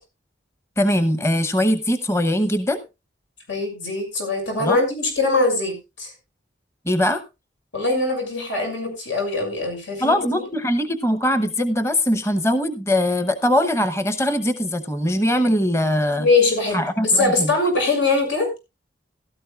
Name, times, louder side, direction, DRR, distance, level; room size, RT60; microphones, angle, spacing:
voice 1, 0.8-2.8 4.6-4.8 6.9-7.2 10.0-16.3 16.7-17.5, left 1 dB, 15° left, 11 dB, 0.8 m, -21 dB
voice 2, 3.5-6.1 7.7-10.4 16.2-18.5, left 3 dB, 90° left, 3 dB, 6.4 m, -22 dB
16.5 x 12.5 x 2.4 m, 0.25 s
head